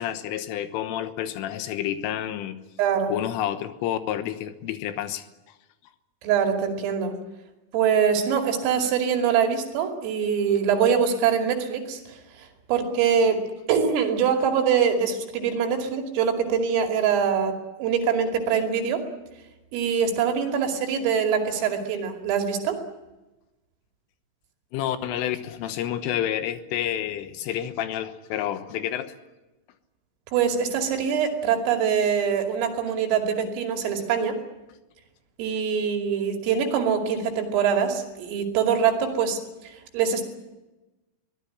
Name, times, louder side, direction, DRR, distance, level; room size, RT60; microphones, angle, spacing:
voice 1, 0.0-2.6 3.1-5.2 24.7-29.1, left 11 dB, 80° left, 10 dB, 3.6 m, -29 dB
voice 2, 2.8-3.1 6.2-7.1 7.7-17.6 17.8-19.0 19.7-22.8 30.3-34.4 35.4-40.2, right 7 dB, 80° right, 4 dB, 5.2 m, -24 dB
24.0 x 17.5 x 10.0 m, 1.1 s
omnidirectional pair, 5.9 m